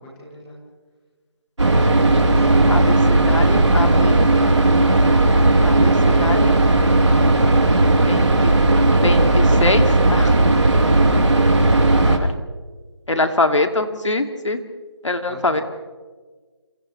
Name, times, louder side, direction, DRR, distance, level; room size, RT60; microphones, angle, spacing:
voice 1, 0.2-0.6 2.2-2.7 7.1-7.7 15.3-15.6, left 1 dB, 5° left, -3 dB, 1.4 m, -39 dB
sound 1, 1.6-12.2, right 2 dB, 80° right, 3.4 m, -15 dB
voice 2, 2.7-4.2 5.6-6.6 8.1-8.6 9.0-10.3 12.0-12.3 13.1-14.6 15.0-15.6, left 2 dB, 80° left, 6 dB, 2.6 m, -24 dB
28.0 x 28.0 x 3.3 m, 1.4 s
figure-of-eight pair, 180°, 15 cm